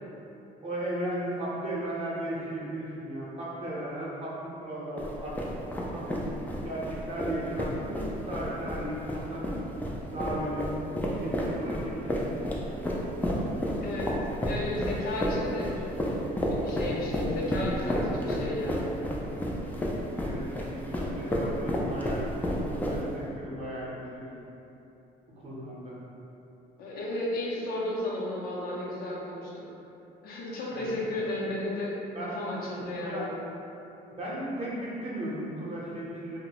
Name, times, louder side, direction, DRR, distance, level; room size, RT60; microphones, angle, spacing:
voice 1, 0.6-6.0 6.6-9.4 10.1-12.4 20.2-24.3 25.4-26.0 30.7-30.9 32.1-33.3 34.2-36.4, right 1 dB, 35° right, -7 dB, 0.7 m, -36 dB
sound 1, 5.0-23.3, equal, 10° left, 0.3 m, -31 dB
voice 2, 13.8-14.1 14.4-16.2 16.5-18.9 26.8-29.6 30.2-33.4, left 1 dB, 60° left, -5 dB, 0.6 m, -33 dB
2.7 x 2.0 x 2.8 m, 2.9 s
cardioid pair, 110°, 17 cm